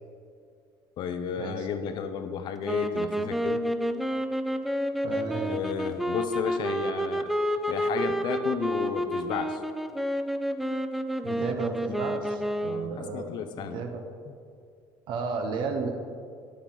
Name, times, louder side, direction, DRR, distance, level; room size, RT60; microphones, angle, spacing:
voice 1, 1.0-3.7 5.2-7.3 7.7-9.6 11.9-12.0 12.6-13.8 14.3-14.4, left 7 dB, 55° left, 9 dB, 0.6 m, -33 dB
sound 1, 2.6-13.0, equal, ahead, 0.3 m, -29 dB
voice 2, 5.0-5.6 11.2-13.3 13.6-14.0 15.1-15.9, right 4 dB, 60° right, 5 dB, 0.8 m, -33 dB
8.4 x 7.8 x 3.8 m, 2.3 s
cardioid pair, 115°, 9 cm